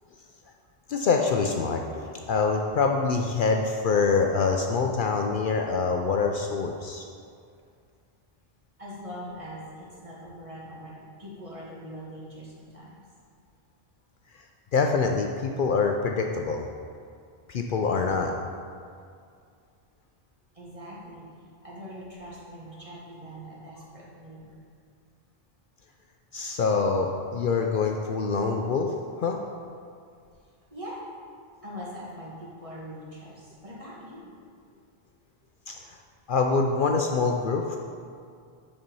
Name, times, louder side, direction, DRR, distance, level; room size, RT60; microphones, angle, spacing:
voice 1, 0.9-7.0 14.7-16.6 17.5-18.3 26.3-29.4 35.7-35.8 36.3-37.8, left 4 dB, 60° left, 2 dB, 0.7 m, -25 dB
voice 2, 8.8-13.0 20.5-21.3 21.6-24.6 30.7-31.0 31.6-34.3, equal, 35° right, -6 dB, 1.9 m, -42 dB
8.9 x 4.3 x 5.3 m, 2.3 s
omnidirectional pair, 1.0 m